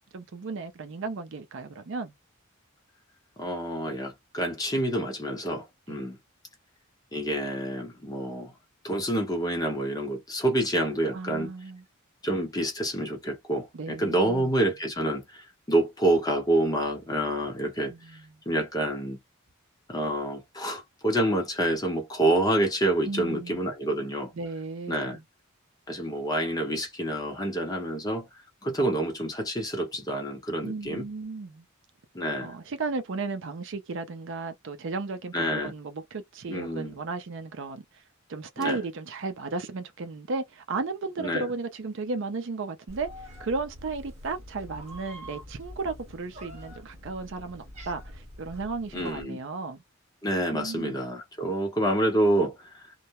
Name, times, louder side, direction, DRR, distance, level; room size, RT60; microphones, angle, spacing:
voice 1, 0.1-2.1 5.9-6.0 11.1-11.8 13.7-14.5 17.9-18.2 23.1-23.6 24.4-25.2 30.6-31.6 32.4-37.8 38.3-49.8 50.5-51.0, right 3 dB, 60° right, 0.5 m, -34 dB
voice 2, 3.4-6.2 7.1-8.5 8.8-11.5 12.2-18.2 18.5-19.2 19.9-24.3 24.9-25.2 25.9-28.3 28.6-31.0 32.1-32.5 35.3-35.7 36.5-36.9 38.6-38.8 41.2-41.5 48.9-49.4 50.2-52.8, right 1 dB, 15° left, 0.8 m, -27 dB
Meow, 42.9-49.2, equal, 30° right, 0.8 m, -45 dB
2.2 x 2.0 x 2.8 m
head